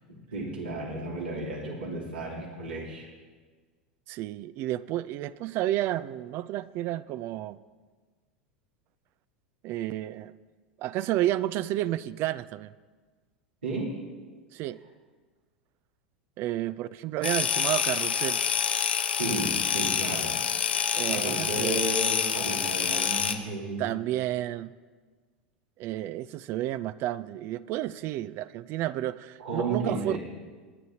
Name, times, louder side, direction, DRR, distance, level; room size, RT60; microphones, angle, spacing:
voice 1, 0.1-3.1 13.6-14.0 19.1-20.4 21.0-24.0 29.4-30.2, right 2 dB, 85° right, 3.1 m, -33 dB
voice 2, 4.1-7.6 9.6-10.3 10.8-12.7 14.5-14.8 16.4-18.4 20.9-21.8 23.8-24.7 25.8-30.2, right 14 dB, 45° right, 0.4 m, -31 dB
sound 1, 17.2-23.4, left 7 dB, 80° left, 0.8 m, -27 dB
24.0 x 9.1 x 2.8 m
hypercardioid pair, 85°, 5 cm